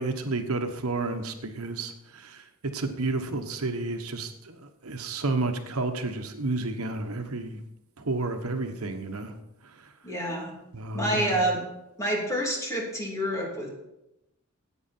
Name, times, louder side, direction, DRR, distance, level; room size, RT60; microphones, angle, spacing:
voice 1, 0.0-4.6 4.8-7.6 8.0-9.3 10.7-11.3, right 3 dB, 80° right, 6 dB, 1.2 m, -31 dB
voice 2, 10.0-10.6 10.9-11.6 12.0-13.7, right 1 dB, 15° left, -2 dB, 3.0 m, -28 dB
14.5 x 8.9 x 4.4 m, 0.88 s
head